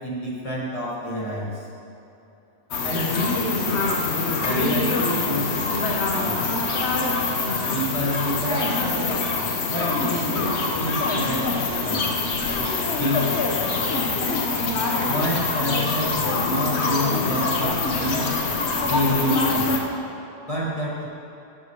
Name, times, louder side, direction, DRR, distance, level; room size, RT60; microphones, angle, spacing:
voice 1, 0.0-1.7 2.8-3.4 4.4-5.5 6.1-6.5 7.7-9.0 9.7-12.1 12.5-13.3 15.1-18.3 18.8-19.7 20.4-21.1, equal, 30° left, -5 dB, 1.5 m, -28 dB
sound 1, 2.7-19.8, left 3 dB, 70° left, 1.2 m, -24 dB
13.0 x 4.4 x 4.6 m, 2.8 s
omnidirectional pair, 1.2 m